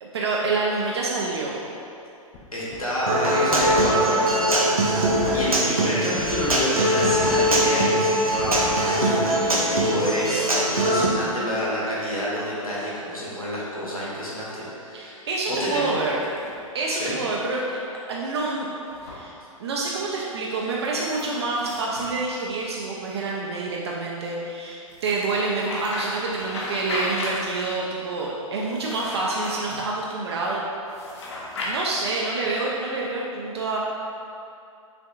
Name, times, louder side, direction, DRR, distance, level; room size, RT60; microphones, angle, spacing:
voice 1, 0.0-1.6 14.9-16.2 16.7-18.7 19.0-19.3 19.6-30.6 31.6-33.8, right 3 dB, 50° right, -3 dB, 0.5 m, -27 dB
sound 1, 2.3-2.4 2.7-2.8 3.5-5.6 6.2-6.6 7.0-7.7 8.3-8.8 9.3-9.9, left 3 dB, 20° left, 0.3 m, -37 dB
voice 2, 2.5-16.1 16.9-17.2, equal, 85° left, -8 dB, 1.4 m, -29 dB
Human voice / Acoustic guitar, 3.1-11.0, right 1 dB, 85° right, 0.7 m, -21 dB
sound 2, 15.6-16.6 18.9-19.2 20.8-22.8 24.9-27.8 28.6-29.9 30.9-31.7, left 1 dB, 50° left, 0.9 m, -35 dB
5.8 x 3.5 x 2.3 m, 2.7 s
figure-of-eight pair, 110°, 18 cm